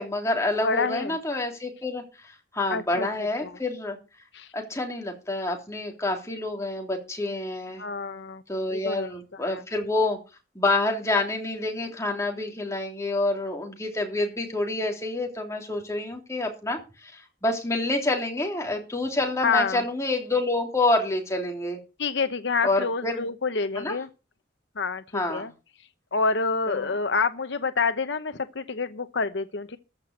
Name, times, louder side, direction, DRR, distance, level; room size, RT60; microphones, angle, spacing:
voice 1, 0.0-4.0 4.5-7.8 8.5-10.2 10.6-21.8 22.6-23.3 23.8-24.0 25.1-25.5 26.7-26.9, left 2 dB, 15° left, 2 dB, 3.3 m, -28 dB
voice 2, 0.6-1.2 2.7-3.1 3.4-3.6 4.3-4.5 7.8-8.4 8.7-9.1 9.5-9.6 19.4-19.8 22.0-24.1 24.8-25.5 26.1-29.8, left 4 dB, 70° left, 11 dB, 0.8 m, -27 dB
14.5 x 5.9 x 8.0 m, 0.31 s
head